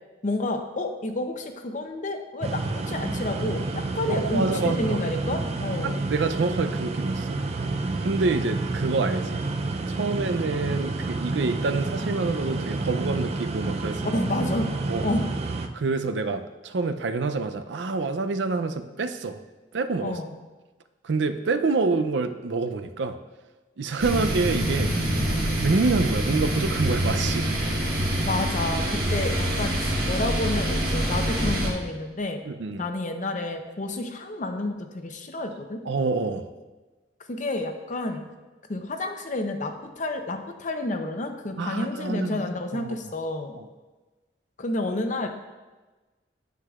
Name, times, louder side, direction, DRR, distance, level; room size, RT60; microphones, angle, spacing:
voice 1, 0.2-6.0 14.1-14.7 15.0-15.2 20.0-20.3 28.2-32.4 32.8-35.8 37.3-38.2 38.7-43.6 44.6-45.3, left 2 dB, 45° left, 6 dB, 0.7 m, -30 dB
sound 1, 2.4-15.7, right 3 dB, 35° right, 0.4 m, -29 dB
voice 2, 4.1-5.0 5.8-7.4 8.0-9.4 9.9-14.2 14.9-15.1 15.7-19.4 19.7-20.2 21.0-23.2 23.8-24.9 25.6-27.5 28.9-29.1 32.4-32.9 35.9-36.5 41.6-42.4 42.7-42.9 43.6-43.7, right 3 dB, 90° right, 9 dB, 0.5 m, -27 dB
sound 2, 24.0-31.7, equal, 60° right, 1.7 m, -25 dB
9.3 x 7.7 x 2.4 m, 1.2 s
head